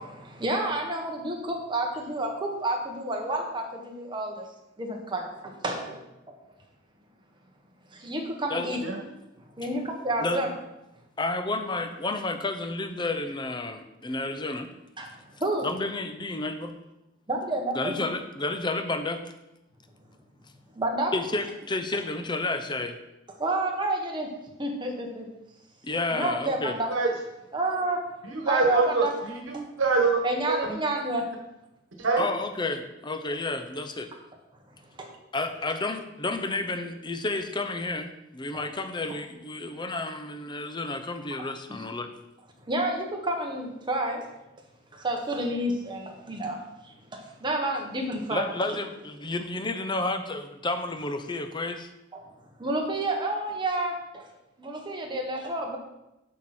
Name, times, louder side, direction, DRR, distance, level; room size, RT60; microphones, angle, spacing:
voice 1, 0.3-4.5 4.8-6.0 6.3-6.4 7.9-8.8 9.6-10.5 15.0-15.1 15.4-15.7 17.3-18.0 20.7-21.2 23.4-24.3 24.6-25.3 26.1-26.9 27.5-28.0 28.5-29.1 30.2-31.3 35.0-35.2 38.5-38.6 41.7-41.8 42.7-44.3 44.9-48.8 52.1-52.2 52.6-54.3 54.6-55.8, right 1 dB, 25° right, 1 dB, 1.3 m, -30 dB
voice 2, 11.2-14.7 15.6-16.7 17.7-19.2 21.1-23.0 25.8-26.7 32.2-34.1 35.3-42.1 48.3-51.9, left 2 dB, 25° left, 7 dB, 0.7 m, -31 dB
voice 3, 28.2-30.8 32.0-32.2, right 3 dB, 80° right, 1 dB, 1.3 m, -25 dB
8.5 x 6.5 x 4.3 m, 0.92 s
head